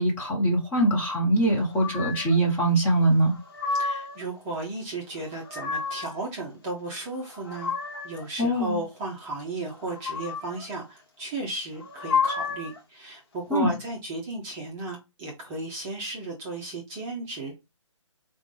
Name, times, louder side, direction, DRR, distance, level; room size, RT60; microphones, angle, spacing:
voice 1, 0.0-3.3 8.4-8.8 13.5-13.7, right 1 dB, 10° left, 0.9 m, -22 dB
sound 1, 1.8-2.4 3.2-4.2 5.2-6.2 7.1-8.3 9.8-10.7 11.8-12.8, left 5 dB, 50° left, 1.0 m, -31 dB
voice 2, 3.7-17.6, right 2 dB, 15° right, 0.6 m, -35 dB
4.9 x 2.2 x 3.1 m
figure-of-eight pair, 145°, 17 cm